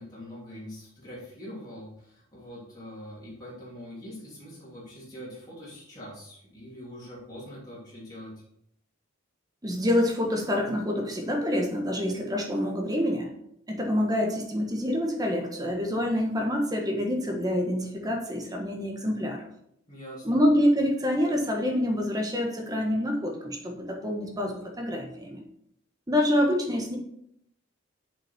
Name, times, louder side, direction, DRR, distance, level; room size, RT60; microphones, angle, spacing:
voice 1, 0.0-8.3 19.9-20.4, equal, 20° left, -9 dB, 2.9 m, -43 dB
voice 2, 9.6-13.3 13.7-19.5 20.2-25.4 26.1-27.0, left 1 dB, 20° right, 2 dB, 1.3 m, -26 dB
7.0 x 5.8 x 4.3 m, 0.74 s
head